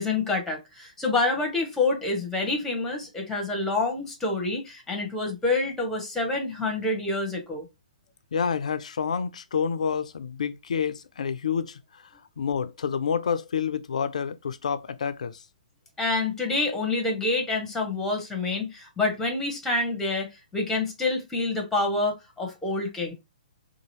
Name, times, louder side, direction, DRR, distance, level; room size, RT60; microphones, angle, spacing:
voice 1, 0.0-7.7 16.0-23.1, left 3 dB, 5° left, 0.9 m, -27 dB
voice 2, 8.3-12.1 12.4-15.4, left 6 dB, 60° left, 0.4 m, -28 dB
2.8 x 2.5 x 2.8 m
figure-of-eight pair, 120°, 4 cm